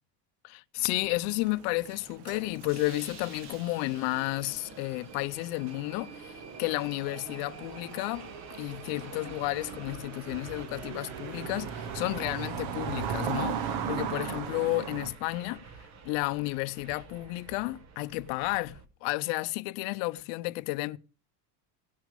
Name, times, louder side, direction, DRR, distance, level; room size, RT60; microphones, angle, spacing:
voice 1, 0.4-8.3 8.6-21.0, left 21 dB, 85° left, 0.6 m, -32 dB
sound 1, 0.9-6.5 6.7-6.9 7.6-15.1, right 7 dB, 55° right, 1.0 m, -38 dB
Subway metro underground, 1.0-18.9, right 5 dB, 35° right, 1.0 m, -47 dB
17.5 x 6.1 x 5.1 m
cardioid pair, 175°, 47 cm